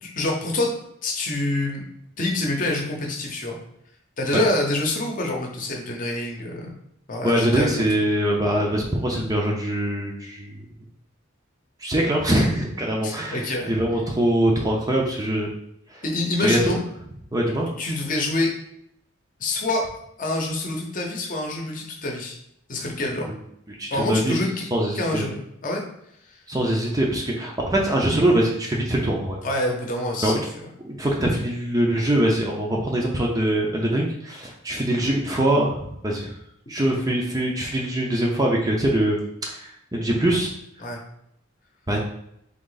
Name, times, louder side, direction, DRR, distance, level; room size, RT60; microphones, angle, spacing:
voice 1, 0.0-0.7 1.0-1.8 2.2-3.6 4.2-6.7 7.1-7.9 13.0-13.8 16.0-16.8 17.8-18.5 19.4-19.8 20.2-22.4 22.7-23.3 23.9-24.7 24.9-25.8 29.4-30.3 40.8-41.0, left 2 dB, 40° left, 1 dB, 0.8 m, -26 dB
voice 2, 7.2-10.5 11.8-15.5 16.4-16.7 17.3-17.7 23.8-24.4 24.7-25.3 26.5-29.4 30.2-30.4 30.8-35.8 36.0-36.3 36.7-39.2 39.5-40.5 41.9-42.0, right 1 dB, 20° right, -1 dB, 0.5 m, -23 dB
3.7 x 3.0 x 3.9 m, 0.75 s
head